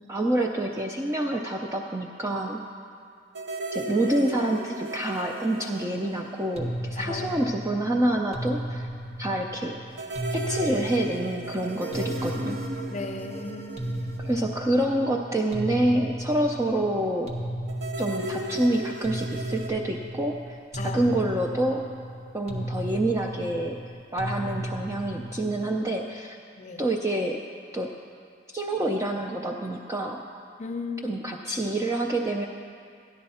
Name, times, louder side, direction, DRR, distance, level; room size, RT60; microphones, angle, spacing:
voice 1, 0.1-2.6 3.7-8.9 9.2-9.8 10.3-12.6 14.2-17.3 18.0-21.9 22.3-23.8 24.1-26.4 26.8-27.4 27.7-27.9 28.5-30.2 31.0-32.5, right 1 dB, 15° right, 1 dB, 0.4 m, -27 dB
sound 1, 3.3-7.1 7.4-7.5 9.9-15.4 17.7-19.7, right 2 dB, 55° right, 0.8 m, -36 dB
sound 2, 6.6-25.9, equal, 30° right, 1.0 m, -35 dB
voice 2, 7.0-7.5 12.9-14.2 20.8-21.0 26.6-26.8 30.6-31.2, left 3 dB, 35° left, 6 dB, 0.5 m, -36 dB
13.0 x 10.5 x 4.2 m, 2.3 s
head